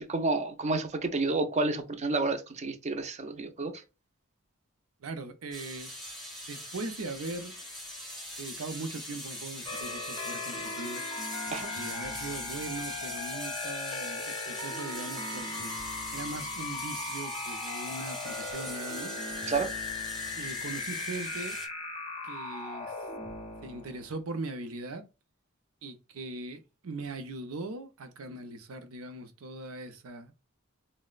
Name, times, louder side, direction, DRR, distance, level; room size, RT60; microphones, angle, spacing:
voice 1, 0.0-3.8 11.5-11.7 19.5-19.7, right 3 dB, 30° right, 0.5 m, -30 dB
voice 2, 5.0-5.9 6.4-7.6 8.4-11.0 11.7-15.7 16.1-19.1 20.4-21.6 22.2-23.0 23.6-25.1 25.8-30.3, right 3 dB, 75° right, 0.6 m, -40 dB
sound 1, 5.5-21.7, left 1 dB, ahead, 0.8 m, -42 dB
sound 2, 9.7-24.2, left 3 dB, 30° left, 0.6 m, -38 dB
4.1 x 2.0 x 2.3 m
head